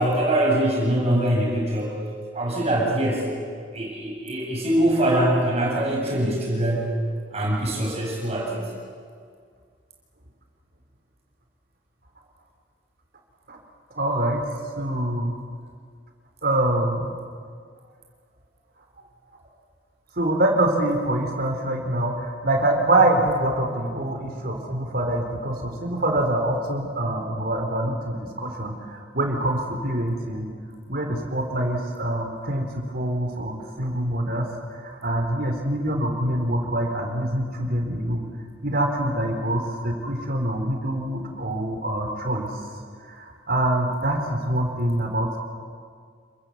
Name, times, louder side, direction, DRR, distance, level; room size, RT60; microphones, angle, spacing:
voice 1, 0.0-1.9 2.3-3.2 3.7-7.0 7.3-8.7, right 1 dB, 35° right, -2 dB, 7.8 m, -23 dB
voice 2, 14.0-14.4 14.8-15.3 16.4-17.1 20.2-30.5 30.9-38.2 38.6-42.5 43.0-45.4, right 1 dB, 50° right, 3 dB, 4.3 m, -25 dB
28.5 x 21.0 x 8.1 m, 2.1 s
head